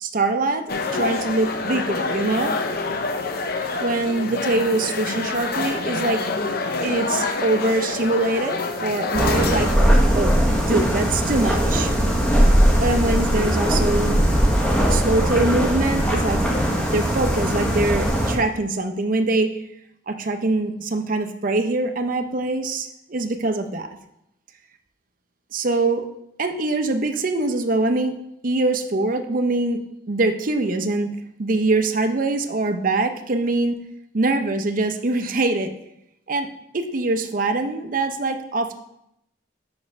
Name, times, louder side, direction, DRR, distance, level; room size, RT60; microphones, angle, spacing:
voice 1, 0.0-0.6 0.9-2.6 3.8-6.3 6.8-9.7 10.1-10.3 10.7-11.9 12.8-14.2 14.9-16.4 16.9-19.5 20.1-23.9 25.5-26.1 26.4-28.1 28.4-33.8 34.1-35.7 36.3-36.5 36.7-38.7, right 2 dB, 45° right, 7 dB, 0.6 m, -23 dB
sound 1, 0.7-9.7, left 3 dB, 50° left, 0.7 m, -27 dB
sound 2, 9.1-18.4, equal, 5° left, 1.1 m, -19 dB
5.9 x 5.2 x 5.3 m, 0.79 s
head